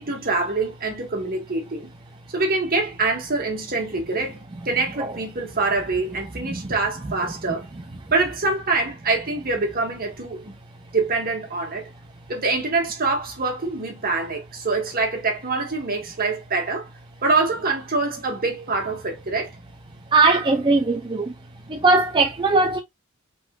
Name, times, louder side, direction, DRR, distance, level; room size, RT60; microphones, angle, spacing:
voice 1, 0.0-1.9 2.3-4.4 4.6-7.7 8.1-10.5 10.9-11.9 12.3-16.9 17.2-19.5, right 3 dB, 45° right, 1.7 m, -25 dB
voice 2, 20.1-21.3 21.7-22.8, right 3 dB, 20° right, 0.5 m, -19 dB
4.9 x 3.9 x 2.4 m
head